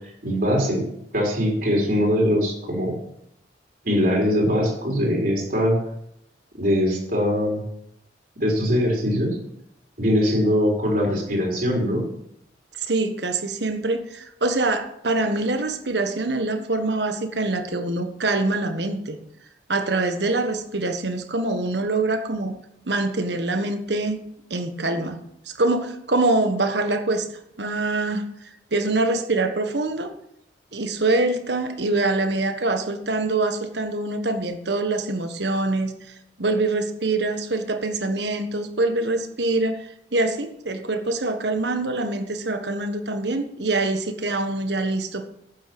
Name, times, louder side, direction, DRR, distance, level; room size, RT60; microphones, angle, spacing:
voice 1, 0.2-0.9 1.1-2.9 3.8-5.8 6.6-7.6 8.4-9.3 10.0-12.0, equal, 55° right, -1 dB, 4.1 m, -21 dB
voice 2, 12.9-19.2 19.7-22.6 22.9-24.2 24.5-25.2 25.5-27.3 27.6-28.2 28.7-30.1 30.7-35.9 36.4-45.3, right 2 dB, 70° right, 8 dB, 1.4 m, -24 dB
12.0 x 9.1 x 6.1 m, 0.77 s
head